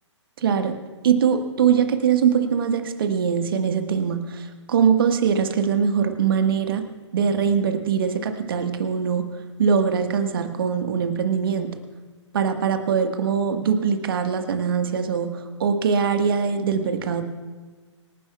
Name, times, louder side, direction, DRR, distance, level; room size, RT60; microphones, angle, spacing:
voice 1, 0.4-0.8 1.0-6.9 7.1-9.3 9.6-11.7 12.3-17.2, right 7 dB, 50° right, 7 dB, 1.4 m, -22 dB
26.0 x 10.5 x 2.3 m, 1.4 s
figure-of-eight pair, 125°, 16 cm